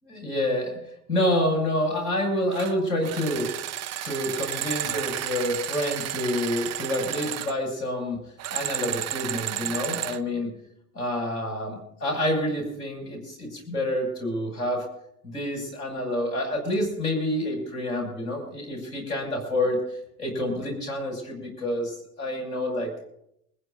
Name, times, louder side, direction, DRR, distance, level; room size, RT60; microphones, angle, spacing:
voice 1, 0.0-0.8 1.1-3.5 4.0-8.2 8.5-10.5 10.9-14.8 15.3-23.1, left 1 dB, 85° left, 1 dB, 6.2 m, -28 dB
sound 1, 2.5-2.7 3.0-7.5 8.4-10.2, right 12 dB, 35° right, 0.8 m, -32 dB
23.5 x 15.0 x 2.6 m, 0.75 s
hypercardioid pair, 80°, 45 cm